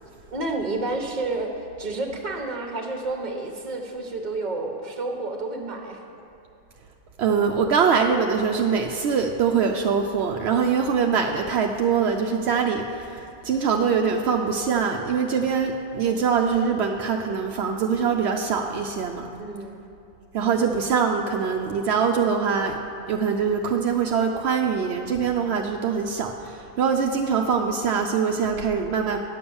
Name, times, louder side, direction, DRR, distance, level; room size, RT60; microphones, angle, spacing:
voice 1, 0.3-1.5 1.8-6.0 19.4-19.8, right 2 dB, 45° right, 2 dB, 1.2 m, -30 dB
voice 2, 7.2-19.3 20.3-22.8 23.1-29.2, right 6 dB, 75° right, 2 dB, 0.9 m, -23 dB
10.0 x 6.9 x 7.0 m, 2.8 s
omnidirectional pair, 1.1 m